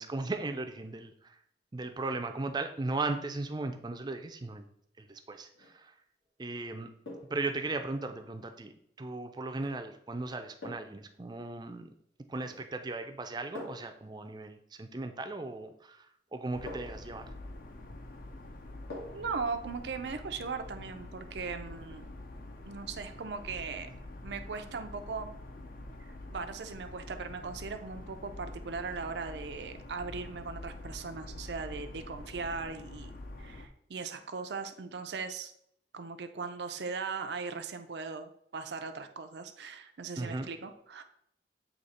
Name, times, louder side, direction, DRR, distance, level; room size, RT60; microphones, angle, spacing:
voice 1, 0.0-1.4 1.7-4.6 5.0-5.9 6.4-6.9 7.3-8.7 9.0-12.0 12.3-17.3 40.2-40.5, right 3 dB, 25° right, 8 dB, 0.4 m, -37 dB
sound 1, 5.5-5.8 7.0-7.5 9.6-9.8 10.6-11.1 12.4-12.8 13.5-14.0 15.7-15.8 16.7-17.1 18.9-19.3 19.7-19.8, left 2 dB, 90° left, 2.4 m, -45 dB
sound 2, 16.5-33.7, left 1 dB, 50° left, 0.6 m, -46 dB
voice 2, 19.1-22.1 22.7-23.9 24.2-25.3 26.0-33.1 33.4-35.5 35.9-41.0, right 4 dB, 75° right, 7 dB, 0.5 m, -39 dB
7.9 x 2.9 x 4.1 m, 0.69 s
head